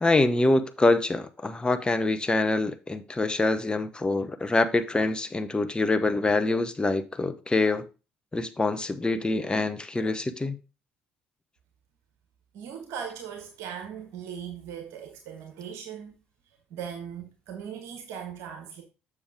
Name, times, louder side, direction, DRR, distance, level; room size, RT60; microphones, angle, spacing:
voice 1, 0.0-7.8 8.3-10.6, left 2 dB, 20° left, 1.0 m, -25 dB
voice 2, 12.5-16.1 16.7-18.8, right 8 dB, 65° right, 1.3 m, -39 dB
7.1 x 6.5 x 3.7 m
hypercardioid pair, 50°, 5 cm